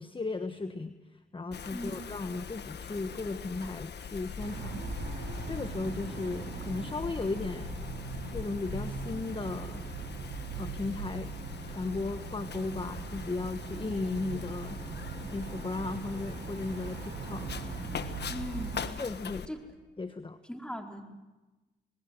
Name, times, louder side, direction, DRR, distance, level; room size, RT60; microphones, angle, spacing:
voice 1, 0.0-4.8 5.4-7.8 8.3-9.8 10.6-11.3 11.7-14.8 15.3-17.7 19.0-19.5 20.0-20.4, left 3 dB, 25° left, 9 dB, 1.3 m, -36 dB
Wind, 1.5-19.5, left 7 dB, 60° left, 1.5 m, -43 dB
sound 1, 4.4-18.8, right 4 dB, 85° right, 6.4 m, -40 dB
voice 2, 18.3-18.8 19.5-19.6 20.5-21.1, equal, 5° left, 2 dB, 4.4 m, -39 dB
27.0 x 20.5 x 7.9 m, 1.1 s
supercardioid pair, 55°, 19 cm